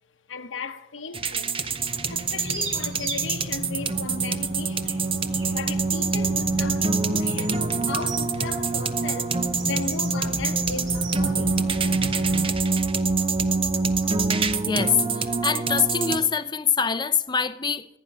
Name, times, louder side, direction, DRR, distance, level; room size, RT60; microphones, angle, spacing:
voice 1, 0.3-1.6 2.1-5.0 5.5-11.7, left 4 dB, 80° left, 1.1 m, -36 dB
sound 1, 1.1-16.2, right 4 dB, 30° right, 0.8 m, -25 dB
sound 2, 1.6-12.4, equal, 85° right, 5.1 m, -36 dB
sound 3, 10.2-14.6, equal, 45° right, 2.3 m, -41 dB
voice 2, 14.6-17.9, left 6 dB, 25° left, 0.7 m, -24 dB
26.0 x 9.6 x 5.5 m
head